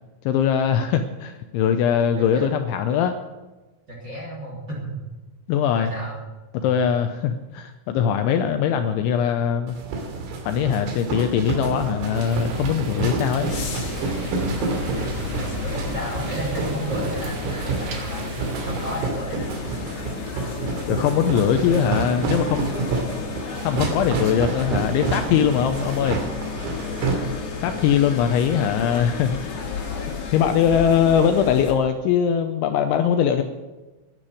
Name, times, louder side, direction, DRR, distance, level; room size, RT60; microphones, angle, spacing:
voice 1, 0.3-3.2 5.5-5.9 6.6-9.8 10.5-13.5 20.9-22.7 23.6-26.2 27.6-29.6 30.3-33.4, left 8 dB, 80° left, 7 dB, 2.8 m, -21 dB
voice 2, 3.9-4.9 5.7-6.2 6.6-6.7 14.9-18.3 18.7-19.4 27.5-27.7, equal, 25° right, -3 dB, 2.9 m, -33 dB
sound 1, 9.7-27.1, right 3 dB, 85° right, 5.0 m, -29 dB
sound 2, 12.1-19.0, right 3 dB, 60° right, 2.7 m, -37 dB
sound 3, 13.4-31.7, left 5 dB, 50° left, 3.6 m, -33 dB
11.5 x 10.5 x 9.1 m, 1.2 s
omnidirectional pair, 5.9 m